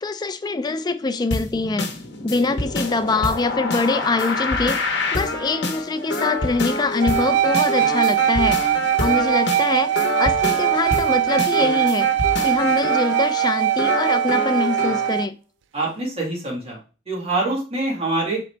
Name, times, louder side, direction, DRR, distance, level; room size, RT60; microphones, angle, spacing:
voice 1, 0.0-1.9 2.2-8.6 9.0-12.1 12.4-15.3, left 3 dB, 25° left, 0.4 m, -24 dB
sound 1, 1.3-15.1, left 3 dB, 70° left, 0.9 m, -27 dB
sound 2, 7.0-15.3, right 13 dB, 90° right, 0.3 m, -21 dB
voice 2, 15.7-16.8 17.1-18.4, right 2 dB, 35° right, 2.0 m, -25 dB
4.0 x 3.8 x 3.3 m
head